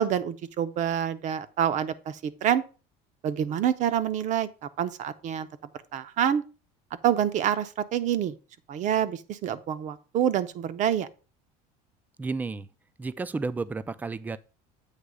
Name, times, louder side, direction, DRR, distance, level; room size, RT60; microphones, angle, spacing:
voice 1, 0.0-2.6 3.2-4.5 4.8-5.5 5.9-6.4 7.0-8.3 8.7-11.1, right 9 dB, 45° right, 0.6 m, -27 dB
voice 2, 12.2-12.7 13.0-14.4, right 3 dB, 10° right, 0.3 m, -32 dB
8.2 x 3.1 x 6.1 m
cardioid pair, 135°, 18 cm